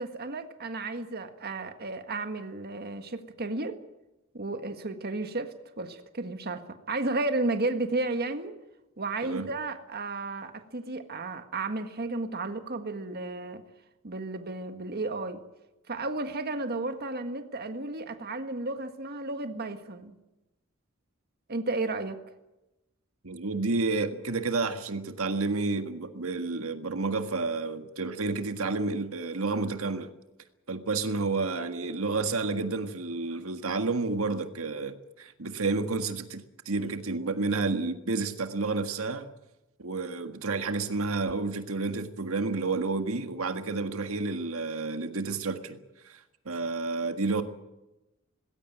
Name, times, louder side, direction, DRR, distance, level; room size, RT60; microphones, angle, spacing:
voice 1, 0.0-3.7 4.3-8.5 9.0-13.6 14.0-15.4 15.9-20.1 21.5-22.2, right 2 dB, 50° right, 1.6 m, -33 dB
voice 2, 23.2-30.1 30.7-39.3 39.8-45.8 46.0-47.4, right 3 dB, 80° right, 1.7 m, -30 dB
20.0 x 17.5 x 9.2 m
head